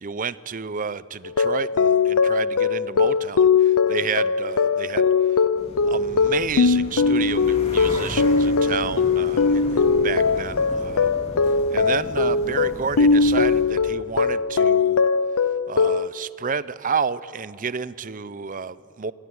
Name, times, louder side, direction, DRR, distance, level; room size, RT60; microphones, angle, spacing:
voice 1, 0.0-5.1 5.9-11.1 11.7-15.0 15.7-19.1, right 6 dB, 35° right, 17 dB, 0.5 m, -30 dB
sound 1, 1.2-16.1, left 5 dB, 75° left, 0.6 m, -20 dB
sound 2, 5.6-13.6, equal, 30° left, 3.7 m, -36 dB
26.5 x 17.5 x 9.5 m, 2.7 s
head